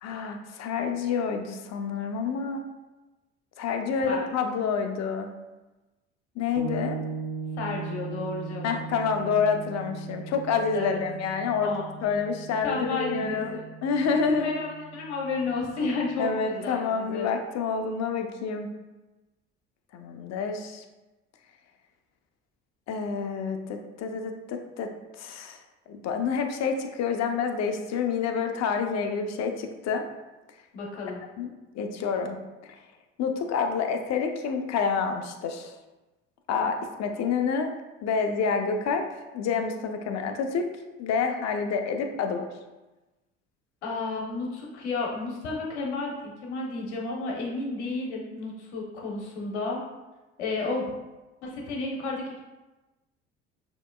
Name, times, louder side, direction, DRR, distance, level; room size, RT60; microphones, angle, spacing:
voice 1, 0.0-2.6 3.6-5.3 6.4-7.0 8.6-14.5 16.2-18.7 19.9-20.8 22.9-24.9 25.2-25.6 25.9-30.1 31.4-31.5 31.7-32.4 32.7-32.8 33.2-35.7 36.5-37.7 38.0-39.0 39.3-40.7 41.0-42.4, left 5 dB, 50° left, 5 dB, 0.7 m, -28 dB
sound 1, 6.6-16.2, right 5 dB, 85° right, 0.8 m, -39 dB
voice 2, 7.6-8.8 10.7-11.0 11.6-12.1 12.6-13.6 14.1-17.3 30.7-31.2 43.8-49.8 50.4-50.9 51.4-52.4, left 3 dB, 85° left, -2 dB, 1.0 m, -32 dB
6.2 x 2.9 x 2.3 m, 1.1 s
hypercardioid pair, 65°, 33 cm